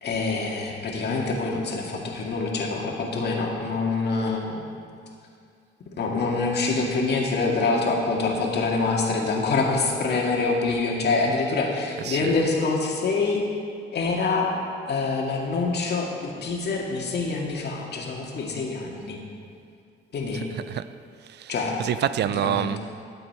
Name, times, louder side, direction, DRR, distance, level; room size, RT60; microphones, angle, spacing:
voice 1, 0.0-4.6 6.0-13.4 13.9-14.5 14.9-19.2 20.1-20.5 21.5-21.8 22.3-22.7, left 3 dB, 55° left, 1.9 m, -25 dB
voice 2, 12.0-12.3 20.5-20.9 21.3-21.5 21.8-22.8, right 10 dB, 60° right, 0.4 m, -27 dB
12.0 x 7.8 x 4.7 m
cardioid pair, 90°, 20 cm